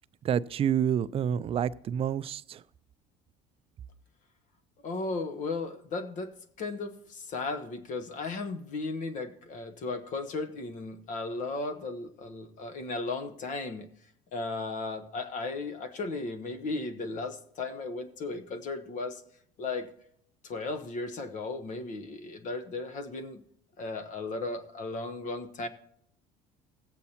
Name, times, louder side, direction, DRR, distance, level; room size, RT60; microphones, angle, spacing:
voice 1, 0.2-2.6, right 9 dB, 35° right, 16 dB, 0.4 m, -28 dB
voice 2, 4.8-13.9 14.3-19.2 19.6-19.9 20.4-23.4 23.8-25.7, left 3 dB, 50° left, 9 dB, 1.0 m, -35 dB
17.0 x 8.2 x 2.9 m, 0.68 s
supercardioid pair, 100°, 16 cm